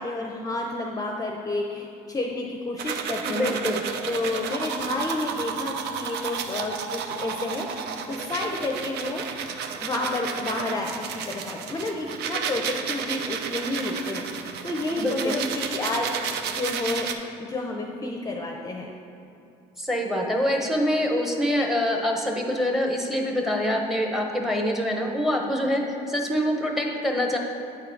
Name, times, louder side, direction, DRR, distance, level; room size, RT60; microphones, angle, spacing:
voice 1, 0.0-3.6 4.1-9.2 9.8-17.1 17.4-18.9 25.4-25.7, left 2 dB, 20° left, 1 dB, 0.5 m, -30 dB
sound 1, 2.8-17.1, right 6 dB, 80° right, 0.5 m, -32 dB
voice 2, 3.2-3.8 14.9-15.4 19.8-27.4, equal, ahead, 2 dB, 0.8 m, -25 dB
8.6 x 3.9 x 4.5 m, 2.7 s
cardioid pair, 110°, 17 cm